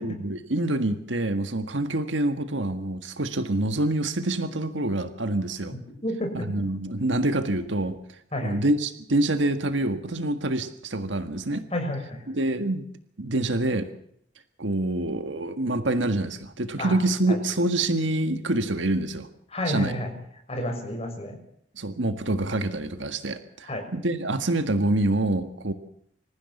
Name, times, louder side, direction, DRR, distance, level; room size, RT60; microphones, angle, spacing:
voice 1, 0.0-5.7 6.4-11.6 12.3-12.9 13.2-13.9 14.6-19.3 19.7-20.0 21.8-25.7, right 2 dB, 75° right, 8 dB, 1.7 m, -26 dB
voice 2, 6.0-6.5 8.3-8.6 11.7-12.3 16.8-17.0 17.3-17.4 19.5-20.1 20.5-21.4 23.7-23.9, left 1 dB, 35° left, 4 dB, 6.6 m, -30 dB
26.5 x 15.0 x 7.2 m, 0.70 s
head